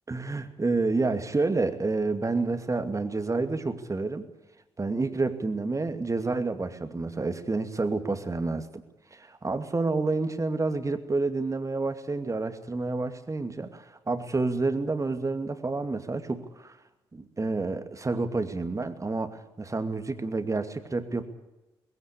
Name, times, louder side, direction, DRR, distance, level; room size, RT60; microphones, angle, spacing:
voice 1, 0.1-4.3 4.8-8.8 9.1-16.8 17.1-21.3, right 3 dB, 25° right, 9 dB, 2.5 m, -29 dB
20.5 x 16.5 x 8.5 m, 1.0 s
figure-of-eight pair, 40°, 12 cm